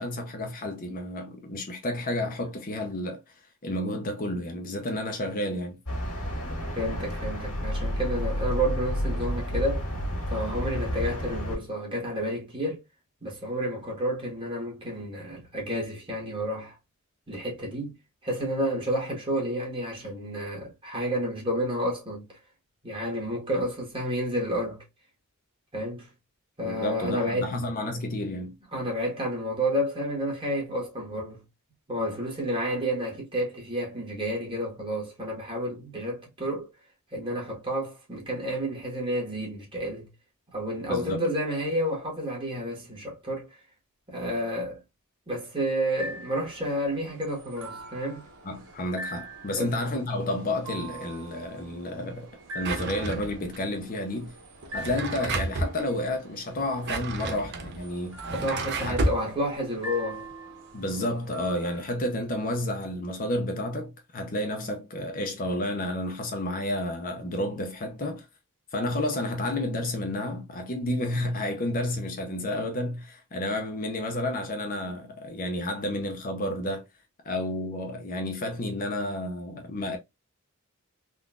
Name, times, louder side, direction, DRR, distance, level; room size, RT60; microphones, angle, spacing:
voice 1, 0.0-3.2 3.6-5.8 26.6-28.6 40.9-41.2 48.4-52.3 52.5-54.3 54.7-58.3 58.8-59.1 60.7-68.3 68.7-76.8 77.2-80.0, left 1 dB, 40° left, 0.6 m, -31 dB
sound 1, 5.9-11.6, equal, 85° left, 1.6 m, -30 dB
voice 2, 6.7-9.9 10.3-12.8 13.2-16.7 17.3-17.9 18.2-22.3 22.8-24.8 25.7-26.1 26.6-27.5 28.7-31.4 31.9-36.7 37.1-40.1 40.5-43.5 44.1-44.8 45.3-48.2 49.6-49.7 58.3-60.3, equal, 25° right, 1.3 m, -30 dB
sound 2, 46.0-62.0, right 2 dB, 80° right, 1.2 m, -44 dB
Drawer open or close, 52.6-53.6 54.6-55.8 56.6-59.2, right 2 dB, 50° right, 0.6 m, -31 dB
3.7 x 2.4 x 2.3 m
head